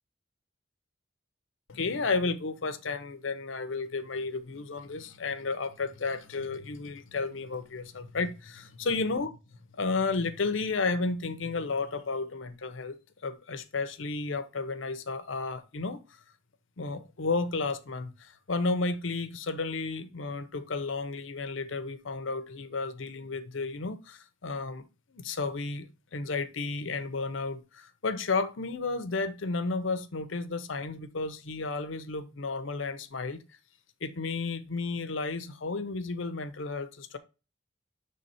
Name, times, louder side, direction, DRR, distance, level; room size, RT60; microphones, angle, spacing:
voice 1, 1.7-9.3 9.8-16.0 16.8-33.4 34.0-37.2, left 3 dB, 85° left, 0.7 m, -32 dB
6.7 x 3.5 x 4.2 m
head